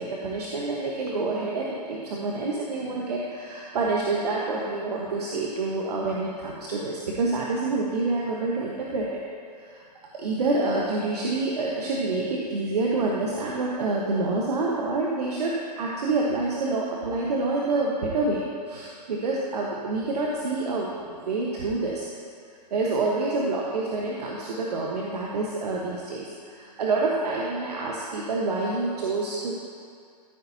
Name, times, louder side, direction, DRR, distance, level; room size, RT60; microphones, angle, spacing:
voice 1, 0.0-9.2 9.6-9.8 10.1-22.1 22.7-29.5, right 3 dB, 70° right, -3 dB, 1.3 m, -27 dB
14.5 x 8.3 x 2.8 m, 2.2 s
hypercardioid pair, 120°, 21 cm